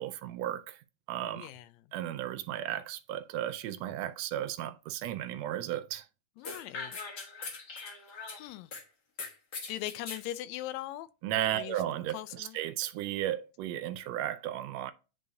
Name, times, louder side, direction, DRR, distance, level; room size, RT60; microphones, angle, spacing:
voice 1, 0.0-1.5 1.9-6.1 11.2-14.9, right 12 dB, 80° right, 1.6 m, -35 dB
voice 2, 1.3-1.7 6.4-7.0 8.4-8.7 9.7-11.1 11.5-11.8 12.1-12.6, left 14 dB, 80° left, 1.8 m, -39 dB
sound 1, 6.4-8.8 9.2-10.2, left 4 dB, 45° left, 1.5 m, -41 dB
9.4 x 4.1 x 2.7 m
omnidirectional pair, 3.3 m